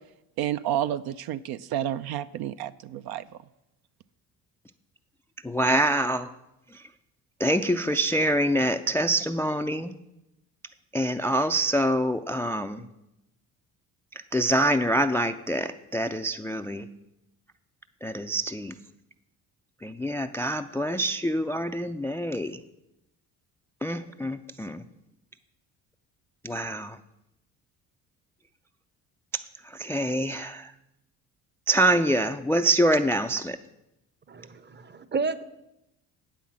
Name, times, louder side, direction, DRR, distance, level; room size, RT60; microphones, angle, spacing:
voice 1, 0.4-3.3, right 11 dB, 65° right, 12 dB, 0.5 m, -30 dB
voice 2, 5.4-6.3 7.4-9.9 10.9-12.8 14.3-16.9 18.0-18.7 19.8-22.6 23.8-24.8 26.4-27.0 29.8-30.7 31.7-33.6, right 1 dB, 5° left, 9 dB, 0.3 m, -25 dB
voice 3, 34.3-35.4, right 4 dB, 25° right, 15 dB, 0.7 m, -31 dB
8.3 x 5.7 x 7.4 m, 0.88 s
supercardioid pair, 65°, 41 cm